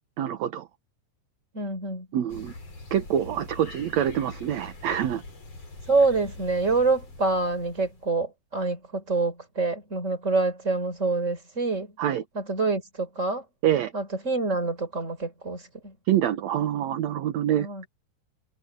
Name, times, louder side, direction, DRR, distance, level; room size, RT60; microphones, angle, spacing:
voice 1, 0.2-0.7 2.1-2.5 2.9-5.2 12.0-12.2 13.6-13.9 16.1-17.7, right 10 dB, 60° right, 2.1 m, -26 dB
voice 2, 1.5-2.1 5.9-11.9 12.3-13.4 13.9-15.9 17.6-17.8, right 3 dB, 20° right, 4.7 m, -26 dB
sound 1, 2.3-8.1, left 2 dB, 45° left, 7.4 m, -44 dB
omnidirectional pair, 4.0 m